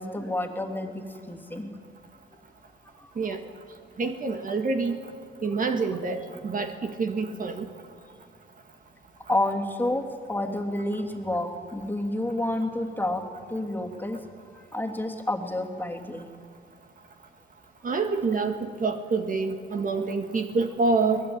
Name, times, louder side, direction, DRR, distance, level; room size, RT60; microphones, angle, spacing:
voice 1, 0.0-1.7 2.3-2.4 3.0-3.4 4.0-4.1 9.3-13.2 13.5-14.2 14.5-16.3, left 1 dB, 10° left, 2 dB, 3.0 m, -30 dB
voice 2, 4.0-5.0 5.4-7.7 17.8-21.2, right 4 dB, 45° right, 6 dB, 1.8 m, -27 dB
22.5 x 20.5 x 8.8 m, 2.1 s
cardioid pair, 90°, 20 cm